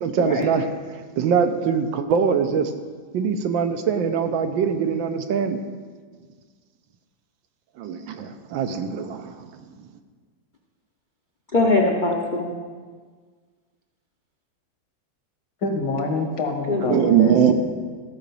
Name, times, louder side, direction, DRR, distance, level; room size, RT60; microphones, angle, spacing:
voice 1, 0.0-2.7 3.1-5.6 7.8-9.5 16.9-17.5, right 7 dB, 75° right, 7 dB, 1.5 m, -22 dB
voice 2, 11.5-12.5 16.7-17.5, left 2 dB, 40° left, 1 dB, 0.7 m, -22 dB
voice 3, 15.6-17.5, left 2 dB, 65° left, 3 dB, 2.0 m, -26 dB
14.5 x 5.0 x 6.9 m, 1.5 s
omnidirectional pair, 2.1 m